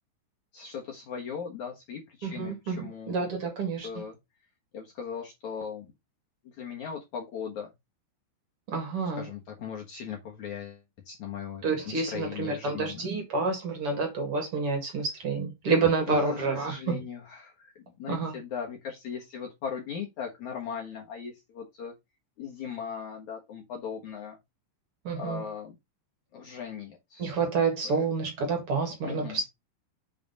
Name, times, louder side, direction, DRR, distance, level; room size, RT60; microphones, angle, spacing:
voice 1, 0.5-3.2 3.8-4.2 4.7-5.9 6.4-7.7 9.2-13.1 16.1-21.9 22.4-24.4 25.2-25.7 26.3-27.3 27.8-28.1 29.0-29.4, left 7 dB, 60° left, 2.0 m, -38 dB
voice 2, 2.2-3.9 8.7-9.3 11.6-17.0 18.1-18.4 25.0-25.4 27.2-29.5, right 4 dB, 50° right, 1.7 m, -29 dB
7.7 x 4.3 x 4.1 m
omnidirectional pair, 5.2 m